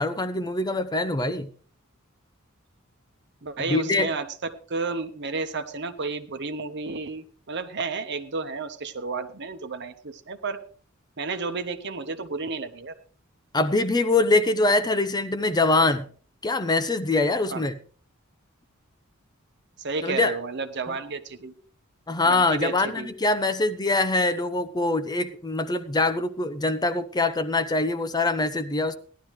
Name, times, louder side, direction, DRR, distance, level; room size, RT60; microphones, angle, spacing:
voice 1, 0.0-1.5 3.7-4.1 13.5-16.1 16.4-17.8 20.0-20.3 22.1-28.9, left 2 dB, 20° left, 10 dB, 0.6 m, -23 dB
voice 2, 3.4-10.7 11.2-12.9 17.5-17.6 19.8-21.5 22.2-23.1, right 4 dB, 55° right, 9 dB, 1.0 m, -32 dB
17.0 x 11.5 x 3.1 m, 0.42 s
head